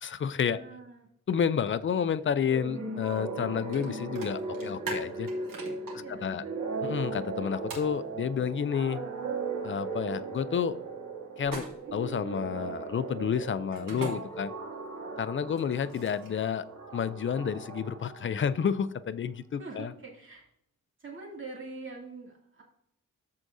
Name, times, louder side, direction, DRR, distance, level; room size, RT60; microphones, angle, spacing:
voice 1, 0.0-0.6 1.3-5.3 6.1-6.4 6.8-9.0 9.6-10.8 11.4-11.6 11.9-14.5 15.2-16.6 16.9-19.9, left 7 dB, 40° left, 14 dB, 0.5 m, -30 dB
voice 2, 0.5-1.1 5.9-6.6 19.6-20.5 21.0-22.6, right 3 dB, 40° right, -2 dB, 2.5 m, -44 dB
sound 1, 2.5-18.9, right 3 dB, 65° right, 2.4 m, -38 dB
sound 2, 3.7-3.9 4.2-5.9 7.7-7.9 11.4-12.0 13.7-14.1 15.5-16.4, right 3 dB, 85° right, 2.5 m, -39 dB
14.0 x 4.8 x 2.7 m, 0.73 s
wide cardioid pair, 130°, 32 cm